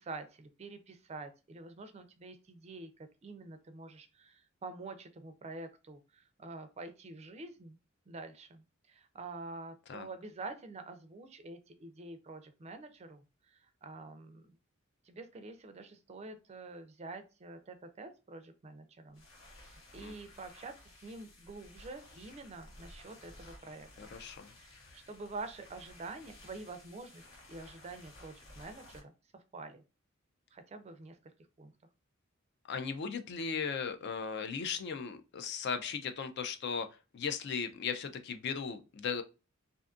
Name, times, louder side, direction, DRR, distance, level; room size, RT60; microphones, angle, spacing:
voice 1, 0.0-7.8 8.1-14.5 15.0-19.2 19.6-24.1 24.6-29.8 30.5-31.3 31.6-31.7, right 3 dB, 30° right, 0.4 m, -47 dB
sound 1, 19.1-29.0, left 1 dB, 70° left, 1.0 m, -55 dB
voice 2, 24.0-24.5 32.7-36.9 37.1-39.2, left 6 dB, 55° left, 0.4 m, -37 dB
2.5 x 2.4 x 2.4 m
head